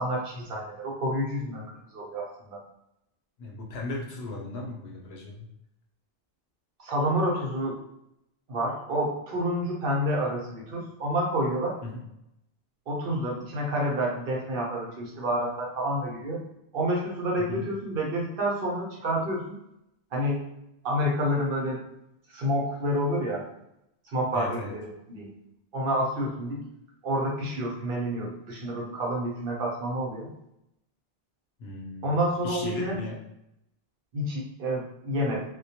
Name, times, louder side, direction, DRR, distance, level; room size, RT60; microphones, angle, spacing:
voice 1, 0.0-1.6 1.9-2.6 6.8-7.8 8.5-11.7 12.9-16.4 16.7-19.6 20.1-20.4 20.8-21.8 22.3-23.4 24.1-24.8 25.1-25.3 25.7-26.6 27.0-30.3 32.0-32.9 34.1-35.4, equal, 65° right, -2 dB, 0.8 m, -28 dB
voice 2, 3.4-5.5 11.8-12.0 17.4-17.7 24.3-24.8 31.6-33.2, left 2 dB, 80° left, -1 dB, 0.9 m, -37 dB
2.2 x 2.1 x 2.7 m, 0.81 s
omnidirectional pair, 1.1 m